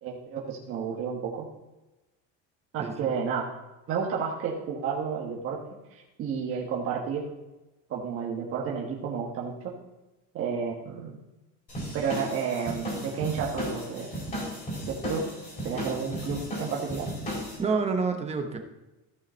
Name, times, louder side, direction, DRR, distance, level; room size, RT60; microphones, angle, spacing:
voice 1, 0.0-1.5 2.7-3.4 3.9-7.3 7.9-9.7 10.3-11.2 11.9-14.1 14.9-15.3 15.6-17.1, right 6 dB, 40° right, -3 dB, 1.4 m, -31 dB
voice 2, 2.8-3.1 17.6-18.6, right 4 dB, 20° right, 5 dB, 0.9 m, -28 dB
sound 1, 11.7-17.6, equal, 25° left, 4.1 m, -35 dB
14.5 x 5.6 x 4.4 m, 1.0 s
cardioid pair, 165°, 33 cm